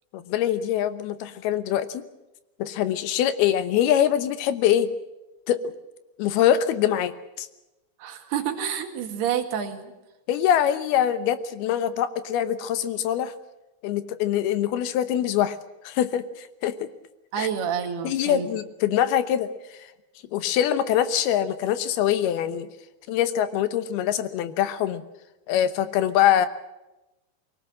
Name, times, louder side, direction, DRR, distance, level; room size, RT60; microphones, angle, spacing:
voice 1, 0.1-2.0 2.6-4.9 5.5-5.7 6.2-7.5 10.3-13.3 13.8-15.6 15.8-16.9 17.4-17.5 18.0-19.9 20.3-22.7 23.1-25.0 25.5-26.5, left 10 dB, 80° left, 11 dB, 3.0 m, -24 dB
voice 2, 8.0-10.0 17.3-18.5, right 8 dB, 85° right, 5 dB, 3.9 m, -28 dB
23.0 x 18.0 x 7.6 m, 0.97 s
omnidirectional pair, 4.5 m